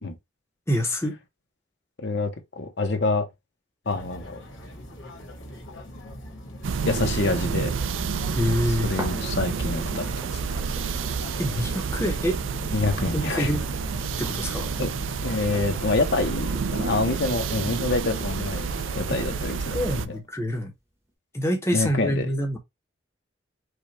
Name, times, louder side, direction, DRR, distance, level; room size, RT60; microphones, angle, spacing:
voice 1, 0.7-1.2 8.4-8.9 11.4-12.4 13.1-13.6 14.2-14.7 19.7-20.7 21.3-22.6, equal, 15° left, 0.9 m, -26 dB
voice 2, 2.0-2.3 2.6-3.3 3.9-4.4 6.8-7.7 8.8-10.4 12.7-13.6 14.8-14.9 15.2-18.6 19.0-20.0 21.7-22.3, left 3 dB, 60° left, 0.9 m, -26 dB
sound 1, 3.8-20.2, equal, 75° left, 1.6 m, -41 dB
sound 2, 6.6-20.1, right 5 dB, 80° right, 0.4 m, -29 dB
sound 3, 9.0-19.0 19.5-19.6, right 1 dB, 15° right, 1.1 m, -42 dB
5.0 x 2.4 x 4.2 m
head